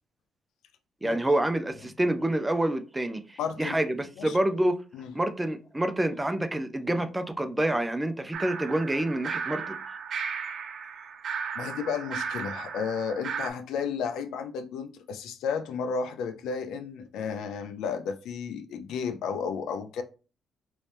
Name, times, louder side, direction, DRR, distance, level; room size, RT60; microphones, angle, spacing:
voice 1, 1.0-4.8 5.1-9.8, right 1 dB, 10° right, 0.5 m, -27 dB
voice 2, 3.4-3.8 4.2-4.4 4.9-5.1 11.6-20.0, left 6 dB, 85° left, 0.4 m, -33 dB
sound 1, 8.3-13.5, right 6 dB, 60° right, 0.6 m, -35 dB
3.1 x 2.7 x 3.3 m
cardioid pair, 90°, 0 cm